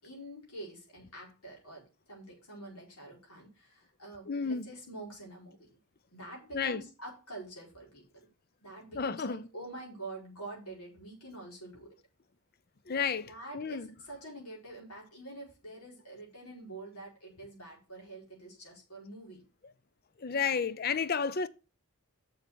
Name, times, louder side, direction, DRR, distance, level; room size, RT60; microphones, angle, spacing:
voice 1, 0.0-5.7 6.1-8.3 8.6-12.0 13.3-19.4, right 2 dB, 85° left, 5.0 m, -46 dB
voice 2, 4.3-4.7 6.5-6.8 8.9-9.5 12.9-13.9 20.2-21.5, left 5 dB, 45° left, 0.5 m, -32 dB
6.9 x 6.7 x 6.2 m
head